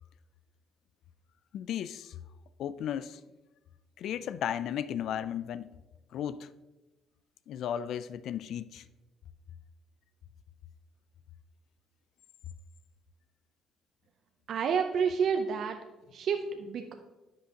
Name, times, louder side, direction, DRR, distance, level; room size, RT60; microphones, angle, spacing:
voice 1, 1.5-2.1 2.6-3.2 4.0-5.7 6.1-6.5 7.5-8.8, left 9 dB, 75° left, 0.3 m, -35 dB
voice 2, 14.5-15.8 16.1-16.9, right 6 dB, 65° right, 0.5 m, -29 dB
10.5 x 5.6 x 2.8 m
cardioid pair, 80°, 0 cm